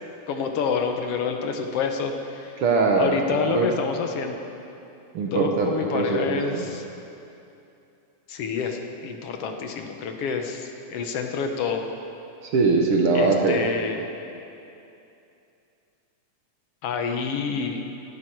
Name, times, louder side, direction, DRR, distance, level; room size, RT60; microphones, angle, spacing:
voice 1, 0.3-2.6 3.0-4.4 5.3-6.8 8.3-11.8 13.1-14.1 16.8-17.8, left 5 dB, 65° left, 4 dB, 1.6 m, -28 dB
voice 2, 2.6-3.1 3.4-3.7 5.1-6.6 12.4-13.6, right 4 dB, 55° right, 0 dB, 1.7 m, -22 dB
19.5 x 12.5 x 4.6 m, 2.8 s
omnidirectional pair, 3.5 m